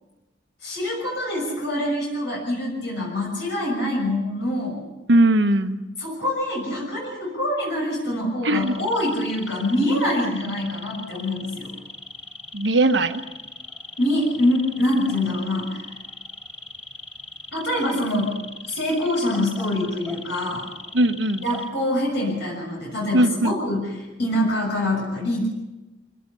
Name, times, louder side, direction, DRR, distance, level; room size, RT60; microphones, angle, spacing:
voice 1, 0.6-4.8 6.0-11.7 14.0-15.8 17.5-18.4 18.7-20.6 21.4-25.5, left 1 dB, 70° left, -2 dB, 6.6 m, -25 dB
voice 2, 5.1-5.8 8.4-8.9 12.5-13.2 20.9-21.4 23.1-23.5, right 1 dB, 65° right, 8 dB, 1.2 m, -19 dB
sound 1, 8.6-21.7, left 2 dB, 5° left, 2.8 m, -40 dB
25.5 x 17.5 x 7.0 m, 1.1 s
head